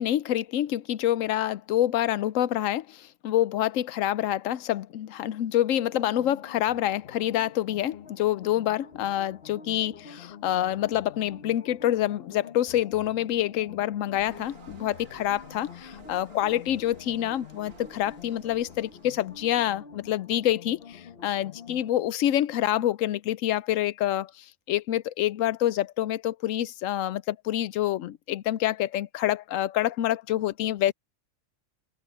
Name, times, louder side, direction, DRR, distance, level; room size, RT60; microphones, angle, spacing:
voice 1, 0.0-30.9, left 12 dB, 80° left, 1.0 m, -27 dB
sound 1, 5.9-21.9, left 6 dB, 50° left, 1.3 m, -47 dB
sound 2, 14.1-19.7, right 5 dB, 90° right, 1.9 m, -53 dB
open air
omnidirectional pair, 1.3 m